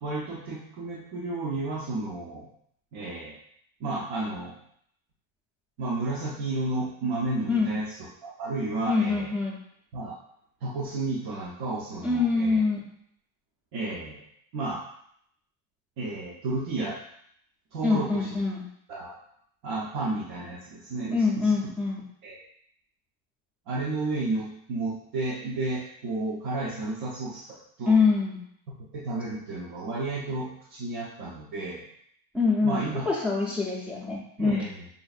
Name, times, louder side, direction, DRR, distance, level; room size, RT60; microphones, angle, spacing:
voice 1, 0.0-2.5 2.9-3.4 3.8-4.6 5.8-9.3 9.9-10.1 10.6-12.6 13.7-14.2 14.5-14.8 16.0-17.0 17.7-18.4 18.9-19.2 19.6-21.6 22.2-22.4 23.7-28.0 28.9-31.8 32.6-33.0 34.4-34.9, right 2 dB, 50° right, -5 dB, 0.7 m, -32 dB
voice 2, 8.9-9.6 12.0-12.8 17.8-18.6 21.1-22.0 27.9-28.4 32.3-32.8 33.1-34.6, left 4 dB, 5° right, -5 dB, 0.5 m, -24 dB
5.3 x 2.6 x 2.4 m, 0.70 s
cardioid pair, 165°, 50 cm